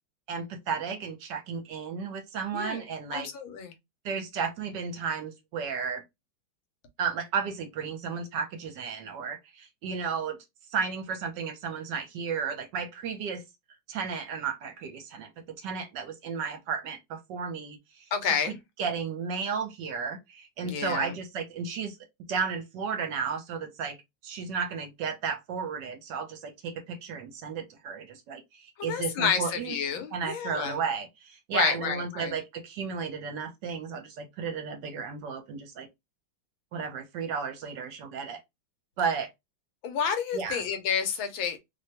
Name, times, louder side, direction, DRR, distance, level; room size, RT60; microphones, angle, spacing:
voice 1, 0.3-3.3 4.0-6.0 7.0-10.4 10.7-13.4 13.9-15.3 15.6-18.3 18.8-22.0 22.3-24.0 24.2-29.8 30.1-35.9 36.7-38.4 39.0-39.3 40.3-40.6, right 6 dB, 70° right, 1.3 m, -33 dB
voice 2, 2.5-2.8 3.1-3.7 18.1-18.6 20.6-21.1 28.8-30.8 31.5-32.4 39.8-41.6, left 7 dB, 90° left, 1.5 m, -30 dB
3.4 x 2.1 x 2.7 m
omnidirectional pair, 2.1 m